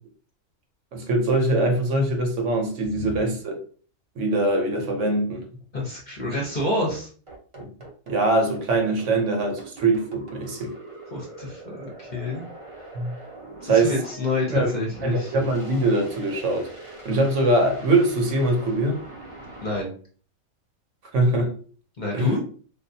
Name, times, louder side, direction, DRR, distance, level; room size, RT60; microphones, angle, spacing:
voice 1, 0.9-3.6 4.2-5.5 7.6-7.7 8.1-10.7 12.9-13.1 13.6-14.0 14.5-14.7 15.0-19.0 21.1-21.6 22.1-22.3, right 2 dB, 65° right, 1.0 m, -23 dB
voice 2, 5.7-7.1 11.1-12.4 13.6-15.3 19.6-19.9 22.0-22.4, left 2 dB, 45° left, 0.7 m, -28 dB
sound 1, 7.3-19.8, right 2 dB, 40° right, 0.4 m, -42 dB
3.5 x 2.3 x 2.7 m
omnidirectional pair, 1.5 m